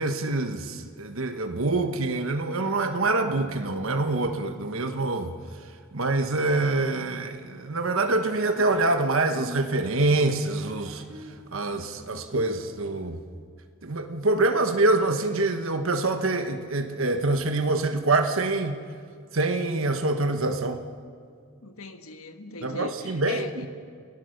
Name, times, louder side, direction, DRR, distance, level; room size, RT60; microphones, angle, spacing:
voice 1, 0.0-5.3 5.9-11.0 11.5-13.2 13.8-18.8 19.3-20.8 22.6-23.7, right 2 dB, 70° right, 6 dB, 1.3 m, -25 dB
sound 1, 7.5-9.0 9.3-9.7 10.0-11.4 11.7-12.7, equal, 55° right, 5.6 m, -45 dB
voice 2, 21.6-23.7, left 4 dB, 80° left, 7 dB, 1.7 m, -40 dB
29.5 x 17.5 x 6.6 m, 2.2 s
head